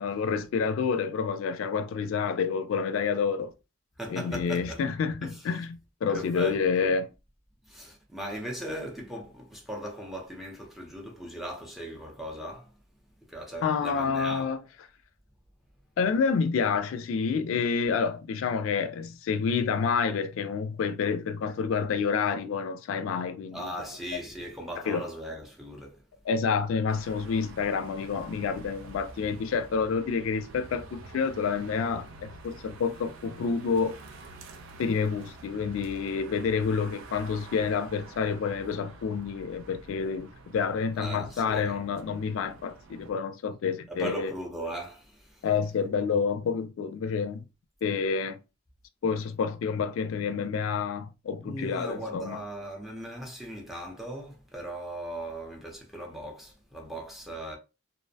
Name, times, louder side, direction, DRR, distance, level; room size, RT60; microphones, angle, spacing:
voice 1, 0.0-3.5 4.1-7.1 13.6-14.6 16.0-23.7 24.9-25.0 26.3-33.9 34.8-44.3 45.4-47.4 47.8-48.4 49.0-52.4, left 5 dB, 80° left, 0.3 m, -28 dB
voice 2, 4.0-4.8 5.2-5.5 6.1-6.9 7.6-12.7 13.3-14.5 23.5-26.0 41.0-41.8 43.9-45.5 51.4-57.6, right 1 dB, ahead, 0.5 m, -38 dB
sound 1, 26.9-43.1, right 3 dB, 80° right, 0.4 m, -48 dB
2.5 x 2.0 x 2.6 m
head